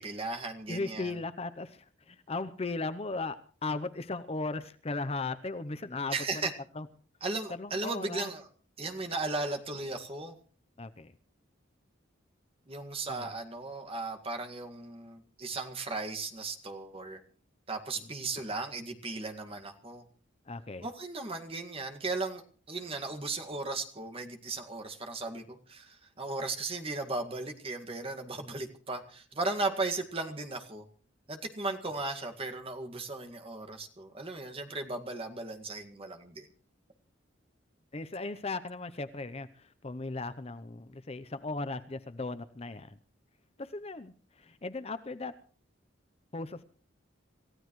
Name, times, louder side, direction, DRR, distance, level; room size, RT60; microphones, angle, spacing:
voice 1, 0.0-1.2 6.1-6.5 7.2-8.5 8.8-10.3 12.7-17.2 17.7-20.0 20.8-30.8 31.3-36.5, right 3 dB, 30° right, 4 dB, 1.9 m, -36 dB
voice 2, 0.7-6.5 6.8-6.9 7.5-8.3 10.8-11.1 13.1-13.3 20.5-20.9 37.9-43.0 43.6-45.3 46.3-46.6, left 3 dB, 30° left, 12 dB, 0.7 m, -37 dB
27.5 x 15.5 x 3.1 m, 0.42 s
head